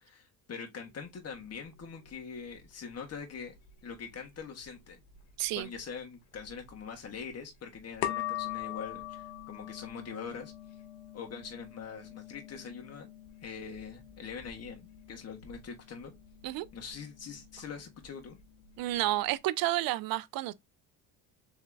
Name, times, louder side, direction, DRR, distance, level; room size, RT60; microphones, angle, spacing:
voice 1, 0.0-3.5 3.8-5.0 5.5-10.5 11.1-13.1 13.4-16.1 16.7-18.4, left 6 dB, 35° left, 1.5 m, -43 dB
sound 1, 0.8-19.4, left 12 dB, 80° left, 0.9 m, -44 dB
voice 2, 5.4-5.7 16.4-16.7 18.8-20.5, right 16 dB, 55° right, 0.5 m, -30 dB
3.6 x 3.5 x 3.3 m
supercardioid pair, 80°, 41 cm